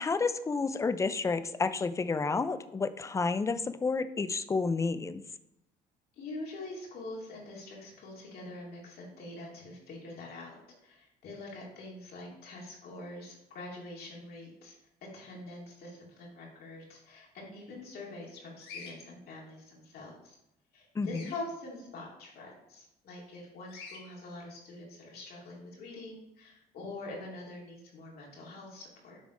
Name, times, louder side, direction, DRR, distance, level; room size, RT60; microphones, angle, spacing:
voice 1, 0.0-5.2 21.0-21.2, left 4 dB, 20° left, 13 dB, 0.4 m, -30 dB
voice 2, 6.2-14.8 15.0-20.4 20.7-29.2, left 2 dB, 65° left, -2 dB, 2.4 m, -45 dB
Bird vocalization bird call bird song, 18.6-18.9 21.0-21.4 23.7-24.0, left 5 dB, 80° left, 1.6 m, -45 dB
7.4 x 3.6 x 5.0 m, 0.85 s
cardioid pair, 110°, 17 cm